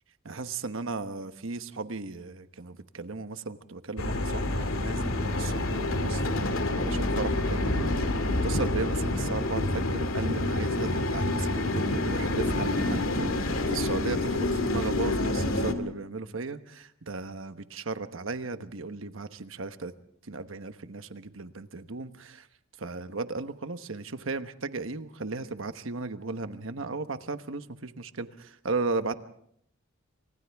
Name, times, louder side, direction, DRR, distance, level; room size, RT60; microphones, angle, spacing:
voice 1, 0.2-7.9 8.4-19.9 20.3-22.5 22.8-29.1, right 3 dB, 70° right, 10 dB, 1.1 m, -36 dB
sound 1, 4.0-15.7, left 2 dB, 80° left, 2.2 m, -28 dB
29.5 x 25.5 x 3.5 m, 0.69 s
head